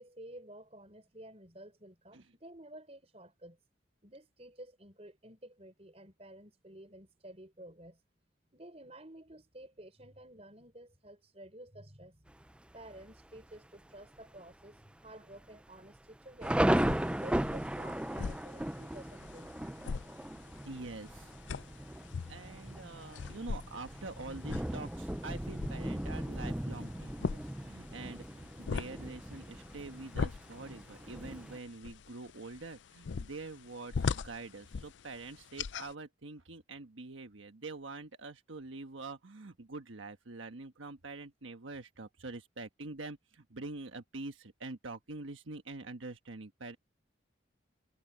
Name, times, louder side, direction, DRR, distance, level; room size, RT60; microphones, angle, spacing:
voice 1, 0.0-3.6 4.0-8.0 8.5-12.3 12.7-16.7 17.1-19.5, right 1 dB, 30° right, 5.7 m, -52 dB
Thunder, 12.3-12.8 13.4-13.5 13.8-14.2 14.5-14.6 15.3-31.6, right 1 dB, 5° right, 0.4 m, -37 dB
sound 1, 16.4-35.9, left 5 dB, 70° left, 0.4 m, -42 dB
voice 2, 20.6-21.3 22.3-46.8, right 3 dB, 90° right, 1.3 m, -45 dB
head